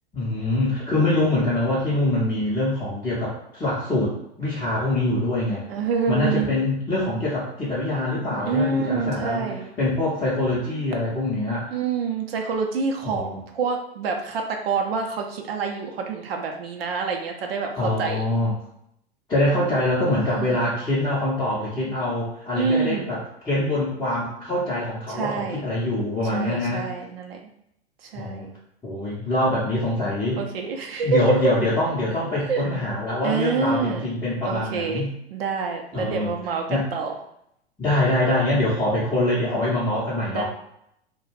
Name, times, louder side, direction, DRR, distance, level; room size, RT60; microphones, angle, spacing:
voice 1, 0.1-5.6 6.1-9.5 9.8-11.7 13.0-13.4 17.8-18.5 19.3-26.9 28.1-28.5 28.8-30.4 31.0-35.1 35.9-36.3 36.7-36.8 37.8-40.4, left 1 dB, 10° left, -10 dB, 0.6 m, -24 dB
voice 2, 5.7-6.6 8.5-9.7 11.7-18.2 20.4-20.5 22.5-23.1 25.1-25.6 26.3-27.4 28.0-28.5 30.4-31.5 32.5-32.7 33.2-34.1 34.5-35.0 35.3-37.1 40.3-40.4, right 5 dB, 65° right, 3 dB, 0.6 m, -27 dB
2.3 x 2.2 x 3.2 m, 0.76 s
figure-of-eight pair, 100°, 33 cm